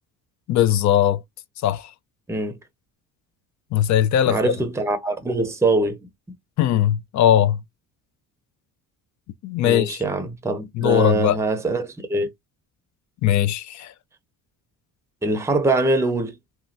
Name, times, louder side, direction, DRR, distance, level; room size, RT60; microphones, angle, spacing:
voice 1, 0.5-1.2 1.6-1.9 3.7-4.5 6.6-7.6 9.4-10.0 10.7-11.4 13.2-13.9, left 11 dB, 50° left, 0.5 m, -19 dB
voice 2, 4.3-6.1 9.6-12.3 15.2-16.3, right 2 dB, 10° right, 0.6 m, -23 dB
2.9 x 2.3 x 2.6 m
cardioid pair, 95°, 37 cm